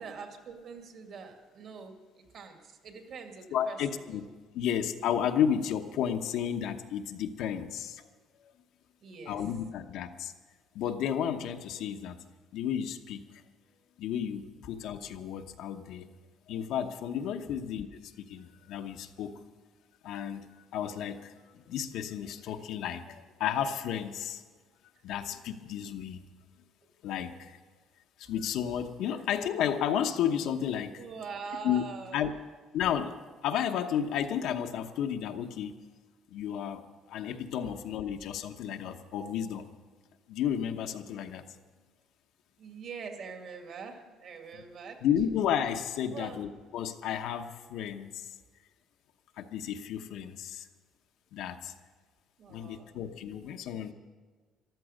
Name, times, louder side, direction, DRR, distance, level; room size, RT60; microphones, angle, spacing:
voice 1, 0.0-4.2 9.0-9.4 17.5-17.6 29.1-29.2 31.0-32.3 37.6-37.7 42.6-45.0 46.1-46.4 52.4-53.0, right 5 dB, 55° right, 4 dB, 2.2 m, -44 dB
voice 2, 3.5-4.2 4.5-8.0 9.3-10.3 10.7-12.2 12.5-13.2 14.0-16.1 16.5-19.4 20.0-21.3 21.7-24.4 25.0-26.2 27.0-27.6 28.2-30.9 31.6-31.8 32.1-32.3 32.7-33.2 33.4-35.7 36.3-39.7 40.3-41.4 45.0-48.3 49.4-50.7 51.3-51.7 52.5-53.9, left 9 dB, 75° left, 6 dB, 1.0 m, -32 dB
14.0 x 12.5 x 6.5 m, 1.4 s
cardioid pair, 150°, 0 cm